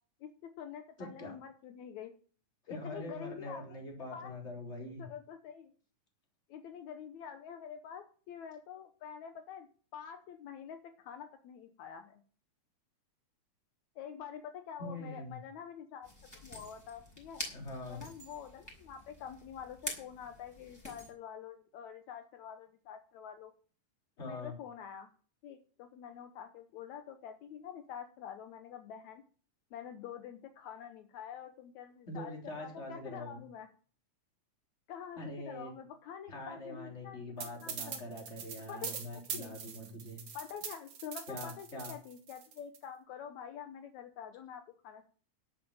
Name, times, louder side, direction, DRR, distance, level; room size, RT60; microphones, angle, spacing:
voice 1, 0.2-2.1 2.7-3.8 4.1-4.4 5.0-5.7 6.5-9.7 9.9-12.2 14.0-16.1 16.4-17.4 17.9-23.5 24.2-25.1 25.4-29.2 29.7-33.7 34.9-38.1 38.7-39.0 39.3-39.6 40.3-45.1, left 8 dB, 75° left, 7 dB, 2.2 m, -47 dB
voice 2, 1.0-1.4 2.7-5.1 14.8-15.4 17.5-18.0 24.2-24.5 32.1-33.4 35.2-35.7 36.3-40.2 41.3-41.9, left 1 dB, 20° left, 1 dB, 3.7 m, -43 dB
sound 1, 16.0-21.1, equal, 5° left, 5.2 m, -46 dB
sound 2, 37.4-42.8, right 7 dB, 75° right, 3.5 m, -42 dB
11.5 x 8.5 x 7.1 m, 0.42 s
omnidirectional pair, 3.5 m